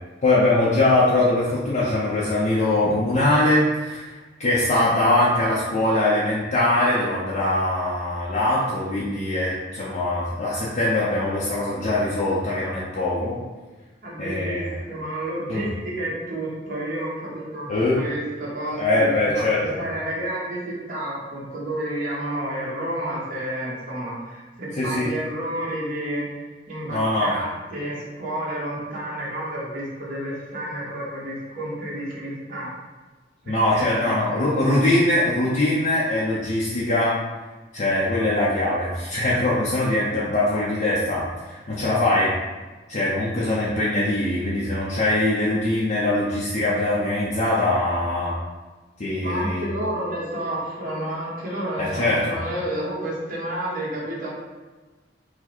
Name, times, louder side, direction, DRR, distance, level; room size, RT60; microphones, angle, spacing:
voice 1, 0.2-4.1 4.4-13.4 14.2-14.7 15.5-15.6 17.7-18.0 18.8-19.8 24.7-25.1 26.9-27.3 33.5-37.2 37.7-42.3 42.9-48.4 49.0-49.7 51.8-52.4, left 1 dB, 45° left, -8 dB, 0.7 m, -22 dB
voice 2, 14.0-26.3 26.7-32.7 33.4-34.1 49.2-54.3, right 1 dB, 50° right, -6 dB, 1.3 m, -30 dB
4.7 x 2.2 x 4.3 m, 1.2 s
head